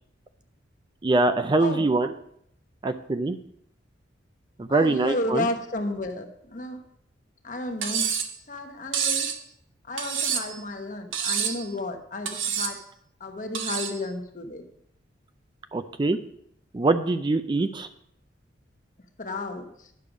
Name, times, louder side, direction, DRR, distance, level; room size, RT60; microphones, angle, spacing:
voice 1, 1.0-2.1 2.8-3.4 4.6-5.5 15.7-16.2 16.7-17.9, right 2 dB, 25° right, 9 dB, 0.4 m, -23 dB
voice 2, 4.7-6.8 7.4-8.1 8.5-9.3 9.9-12.8 13.2-14.6 19.2-19.9, left 2 dB, 40° left, 5 dB, 1.0 m, -32 dB
Cutlery silverware, 7.8-8.3 8.9-9.4 10.0-10.6 11.1-11.6 12.3-12.8 13.5-14.0, right 7 dB, 85° right, 1.1 m, -27 dB
10.5 x 6.7 x 4.9 m, 0.72 s
head